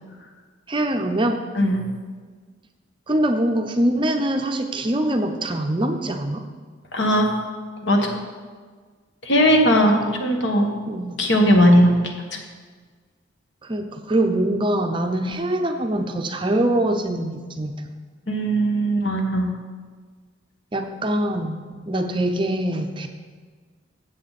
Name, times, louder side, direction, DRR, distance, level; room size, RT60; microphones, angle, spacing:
voice 1, 0.7-1.4 3.1-6.5 9.7-10.2 10.9-11.2 13.6-17.8 20.7-23.1, right 1 dB, 25° right, 5 dB, 0.6 m, -23 dB
voice 2, 6.9-7.3 7.8-8.2 9.2-10.7 11.2-12.0 18.3-19.5, equal, 60° left, 2 dB, 1.5 m, -18 dB
14.5 x 7.7 x 4.1 m, 1.5 s
head